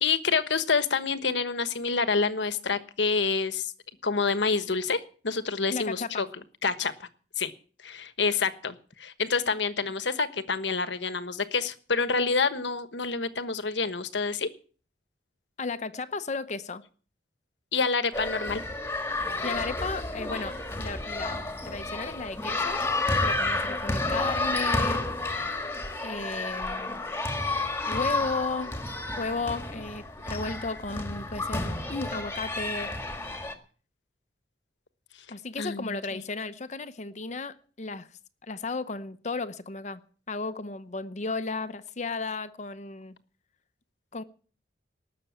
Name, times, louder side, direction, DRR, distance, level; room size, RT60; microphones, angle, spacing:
voice 1, 0.0-3.7 4.0-6.3 6.6-7.1 7.4-7.5 7.8-14.5 17.7-18.6 35.6-36.2, left 4 dB, 85° left, 1.2 m, -27 dB
voice 2, 5.7-6.3 15.6-16.8 19.4-22.8 23.2-25.1 26.0-27.0 27.9-28.8 29.2-32.9 35.3-38.1 38.4-40.0 40.3-43.2 44.1-44.2, left 3 dB, 40° left, 0.8 m, -34 dB
sound 1, 18.1-33.5, left 2 dB, 15° left, 1.7 m, -31 dB
19.0 x 6.9 x 8.6 m
head